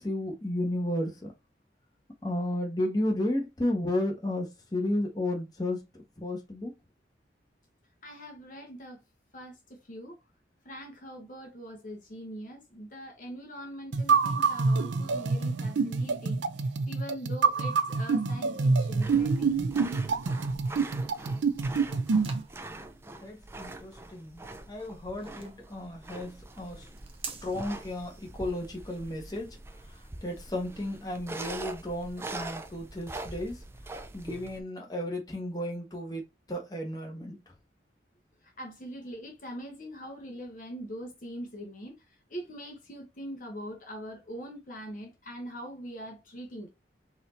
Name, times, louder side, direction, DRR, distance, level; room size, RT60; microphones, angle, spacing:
voice 1, 0.0-1.3 2.2-5.8 6.2-6.7 23.2-26.9 27.4-29.6 30.2-33.6 34.1-36.2 36.5-37.4, left 1 dB, 20° left, 1.2 m, -33 dB
voice 2, 8.0-9.0 9.3-10.2 10.6-19.6 38.4-46.7, equal, 45° left, 1.0 m, -42 dB
sound 1, 13.9-22.4, right 4 dB, 80° right, 0.5 m, -26 dB
sound 2, 19.0-34.6, right 2 dB, 15° right, 0.4 m, -43 dB
sound 3, 21.3-28.3, right 5 dB, 30° right, 0.8 m, -49 dB
4.1 x 2.7 x 4.2 m
head